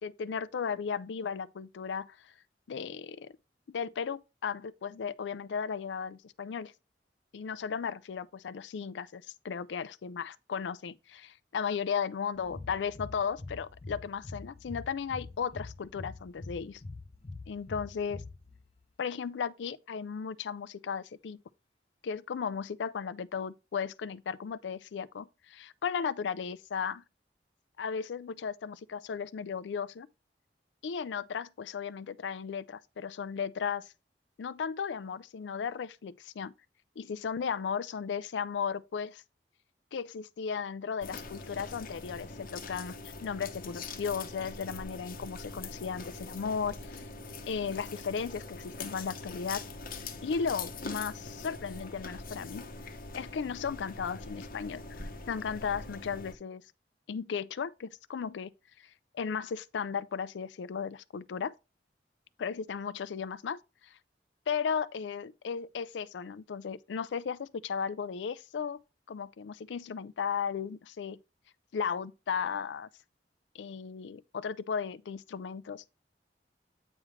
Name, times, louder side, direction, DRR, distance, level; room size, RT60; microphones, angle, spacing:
voice 1, 0.0-2.3 2.7-3.3 3.7-6.7 7.3-16.8 17.5-18.2 19.0-21.4 22.0-27.0 27.8-30.1 30.8-33.9 34.4-36.5 37.0-39.2 39.9-47.1 47.4-49.6 50.2-52.7 53.1-54.8 55.3-56.6 57.1-58.5 59.1-61.5 62.4-64.0 64.5-68.8 69.1-71.2 71.7-72.9 73.5-75.8, left 6 dB, 90° left, 0.4 m, -35 dB
sound 1, 12.4-18.9, left 3 dB, 35° left, 0.5 m, -45 dB
sound 2, 41.0-56.3, left 3 dB, 50° left, 0.8 m, -43 dB
8.7 x 3.1 x 4.9 m
head